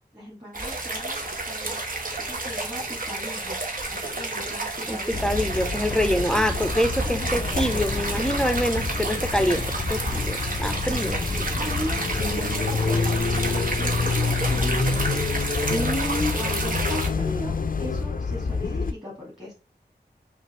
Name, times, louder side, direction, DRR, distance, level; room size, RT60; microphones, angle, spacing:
voice 1, 0.1-1.8 2.2-3.6 3.9-5.3 6.3-6.7 7.0-8.0 9.4-9.7 10.7-15.1 15.7-17.5 17.8-19.5, equal, 20° right, -4 dB, 1.9 m, -39 dB
sound 1, 0.5-17.1, right 2 dB, 50° right, 1.1 m, -30 dB
voice 2, 4.9-9.6 9.9-11.2 15.7-16.3, equal, 5° left, 8 dB, 0.5 m, -25 dB
sound 2, 5.1-18.9, left 4 dB, 55° left, 0.5 m, -27 dB
5.3 x 2.6 x 3.0 m, 0.32 s
wide cardioid pair, 65°, 18 cm